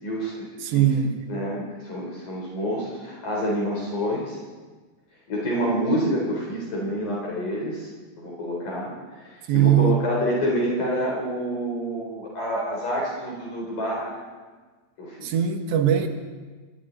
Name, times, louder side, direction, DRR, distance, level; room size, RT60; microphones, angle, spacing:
voice 1, 0.0-0.8 1.3-4.4 5.3-7.9 8.2-14.2 15.0-15.3, equal, 50° left, -3 dB, 5.2 m, -28 dB
voice 2, 0.6-1.2 9.5-10.1 15.2-16.1, right 10 dB, 85° right, 5 dB, 3.7 m, -20 dB
29.0 x 23.0 x 4.0 m, 1.4 s
omnidirectional pair, 5.0 m